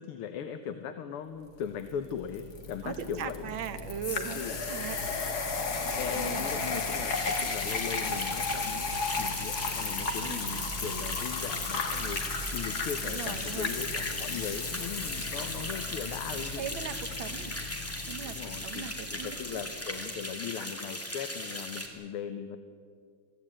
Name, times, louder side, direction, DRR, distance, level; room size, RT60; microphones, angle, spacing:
voice 1, 0.0-3.5 4.3-4.5 6.0-12.2 12.5-16.6 18.3-22.6, left 8 dB, 85° left, 8 dB, 1.9 m, -39 dB
sound 1, 1.8-19.9, left 4 dB, 45° left, 2.4 m, -35 dB
voice 2, 2.8-5.0 6.1-6.5 10.2-10.4 13.0-13.7 16.6-17.6 18.1-19.4, right 9 dB, 65° right, 9 dB, 1.9 m, -39 dB
Musical instrument, 4.9-16.8, right 4 dB, 45° right, 0.8 m, -47 dB
sound 2, 7.1-21.9, left 1 dB, 5° left, 2.3 m, -39 dB
23.5 x 15.0 x 8.8 m, 2.2 s
omnidirectional pair, 2.4 m